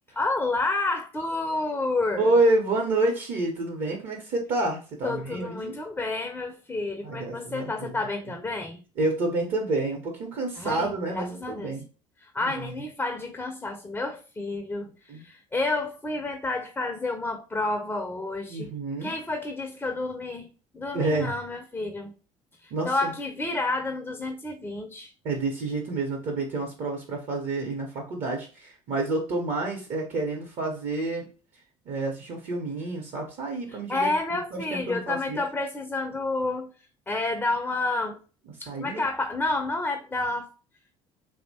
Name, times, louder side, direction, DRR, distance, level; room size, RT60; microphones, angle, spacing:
voice 1, 0.2-2.3 5.0-8.8 10.6-11.8 12.3-14.9 15.2-18.7 19.0-22.1 22.6-25.1 33.9-36.7 37.1-38.2 38.6-40.5, left 2 dB, 10° left, 0.4 m, -30 dB
voice 2, 2.2-5.7 7.0-8.0 9.0-11.8 12.4-12.8 15.1-15.2 18.5-19.1 20.9-21.3 22.7-23.1 25.2-31.2 31.9-35.4 38.7-39.0, right 2 dB, 55° right, 0.7 m, -28 dB
2.9 x 2.0 x 2.7 m
hypercardioid pair, 65°, 16 cm